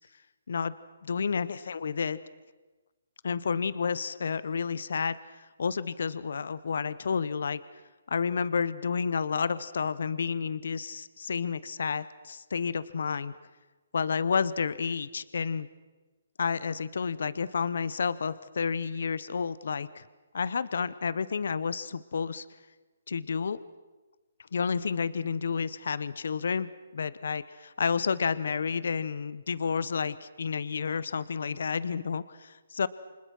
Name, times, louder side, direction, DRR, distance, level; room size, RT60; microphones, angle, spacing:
voice 1, 1.0-2.2 3.2-5.2 5.6-7.6 8.1-13.3 13.9-15.7 16.4-20.0 20.3-22.5 23.1-23.6 24.5-32.9, left 5 dB, 70° left, 17 dB, 0.9 m, -30 dB
29.0 x 25.0 x 6.1 m, 1.2 s
hypercardioid pair, 150°, 0 cm